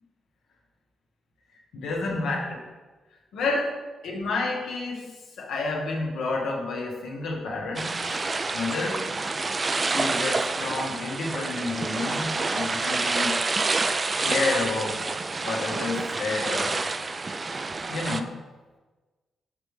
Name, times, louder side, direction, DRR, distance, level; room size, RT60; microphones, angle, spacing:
voice 1, 1.7-2.6 3.3-3.8 4.0-5.1 5.4-9.0 9.8-13.4 14.2-15.2 15.4-16.8 17.9-18.3, left 3 dB, 85° left, -1 dB, 1.2 m, -30 dB
sound 1, 7.8-18.2, right 3 dB, 35° right, 0.3 m, -28 dB
5.9 x 5.1 x 3.2 m, 1.3 s
cardioid pair, 80°, 0 cm